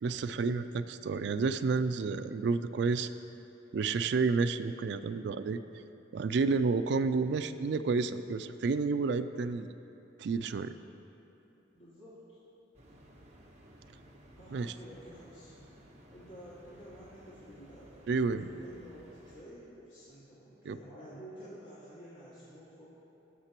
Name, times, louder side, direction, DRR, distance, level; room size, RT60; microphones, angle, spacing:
voice 1, 0.0-3.1 3.7-5.6 6.1-9.7 10.2-10.7 14.5-14.7 18.1-18.5 20.7-20.8, right 4 dB, 65° right, 11 dB, 0.3 m, -30 dB
voice 2, 11.7-12.4 14.4-15.5 16.1-18.1 18.6-22.8, equal, 90° left, -11 dB, 2.1 m, -51 dB
sound 1, 12.7-19.4, equal, 35° right, 1.1 m, -56 dB
18.0 x 6.6 x 3.0 m, 2.9 s
head